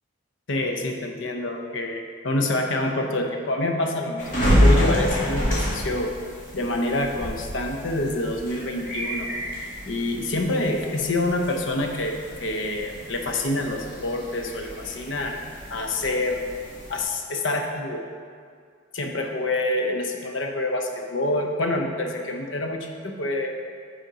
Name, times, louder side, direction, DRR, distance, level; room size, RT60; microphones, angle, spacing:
voice 1, 0.5-6.1 6.5-9.3 9.9-15.4 15.7-16.4 16.9-18.1 18.9-23.6, left 2 dB, 75° left, 3 dB, 0.7 m, -27 dB
sound 1, 4.2-17.0, equal, 40° left, 1.5 m, -28 dB
5.3 x 4.3 x 5.0 m, 2.2 s
head